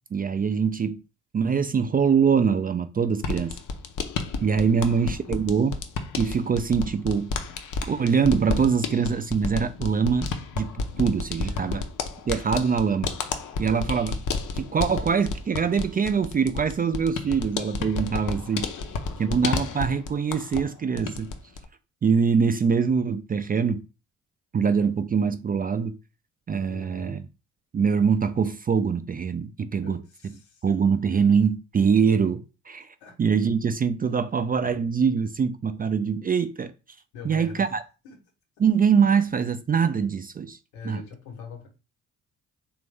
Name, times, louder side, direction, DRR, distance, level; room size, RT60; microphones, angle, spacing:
voice 1, 0.1-1.0 1.3-3.6 4.4-5.8 6.2-7.3 7.8-10.7 11.0-11.9 12.3-13.1 13.6-14.2 14.6-18.7 19.2-21.3 22.0-23.8 24.5-26.0 26.5-27.2 27.7-30.0 30.6-32.9 33.2-36.7 37.2-37.8 38.6-40.6 40.8-41.0, right 6 dB, 25° right, 0.4 m, -23 dB
sound 1, 3.2-20.7 21.0-21.7, left 4 dB, 55° left, 0.8 m, -31 dB
voice 2, 4.7-5.5 11.4-11.9 13.7-14.2 18.8-18.9 26.7-27.2 29.8-30.6 33.0-33.1 37.1-37.7 38.0-38.2 40.7-41.7, left 4 dB, 80° left, 1.3 m, -42 dB
3.4 x 2.6 x 3.3 m
hypercardioid pair, 50°, 38 cm